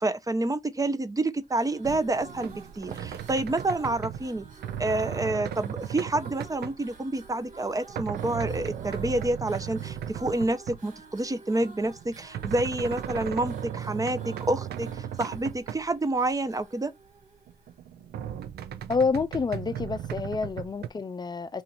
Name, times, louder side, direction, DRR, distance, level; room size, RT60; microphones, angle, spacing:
voice 1, 0.0-4.5 4.8-16.9, right 2 dB, 20° right, 0.7 m, -28 dB
sound 1, 1.4-17.9, right 3 dB, 50° right, 1.6 m, -50 dB
sound 2, 1.8-10.9 11.6-16.0 16.3-16.4 16.6-16.7 17.5-20.9, right 9 dB, 75° right, 0.5 m, -36 dB
voice 2, 18.9-21.6, left 4 dB, 25° left, 0.6 m, -28 dB
2.7 x 2.5 x 4.2 m
cardioid pair, 75°, 17 cm